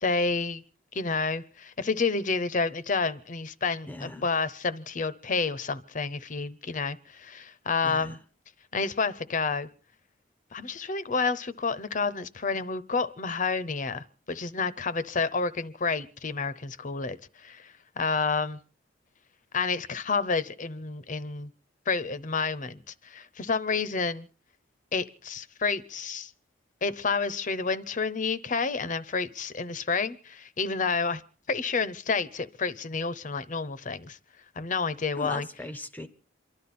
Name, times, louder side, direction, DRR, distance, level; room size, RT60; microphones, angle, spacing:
voice 1, 0.0-0.6 0.9-8.2 8.7-9.7 10.5-18.6 19.5-21.5 21.9-24.3 24.9-26.3 26.8-31.2 31.5-34.2 34.6-35.5, left 4 dB, 45° left, 0.7 m, -29 dB
voice 2, 3.9-4.3 7.8-8.2 35.2-36.1, left 1 dB, 10° left, 0.7 m, -39 dB
28.0 x 12.0 x 4.2 m
head